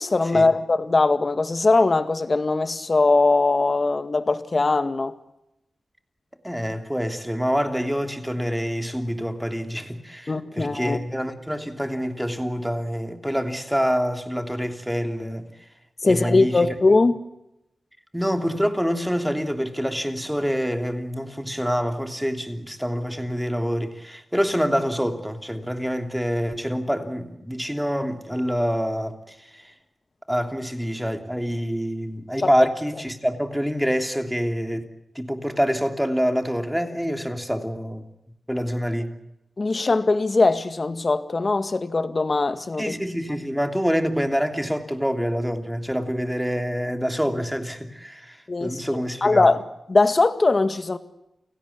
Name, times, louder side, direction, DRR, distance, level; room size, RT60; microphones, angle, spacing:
voice 1, 0.0-5.2 10.3-11.0 16.0-17.2 32.4-32.5 39.6-43.0 48.5-49.6 49.9-51.0, left 3 dB, 45° left, 2.0 m, -21 dB
voice 2, 6.4-15.5 16.0-16.7 18.1-29.7 30.3-34.9 35.1-38.1 38.5-39.1 42.8-49.5, equal, 5° right, 3.1 m, -26 dB
29.5 x 17.5 x 8.6 m
cardioid pair, 65°, 0 cm